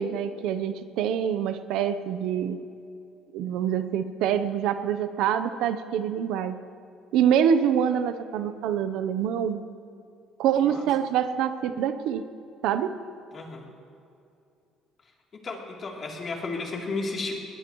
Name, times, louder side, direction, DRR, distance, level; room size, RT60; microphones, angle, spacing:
voice 1, 0.0-2.6 3.3-6.6 7.1-9.6 10.4-12.3 12.6-12.9, right 9 dB, 80° right, 10 dB, 0.8 m, -25 dB
voice 2, 13.3-13.6 15.4-17.3, left 3 dB, 35° left, -1 dB, 3.2 m, -33 dB
21.5 x 20.5 x 3.1 m, 2.6 s
cardioid pair, 120°, 0 cm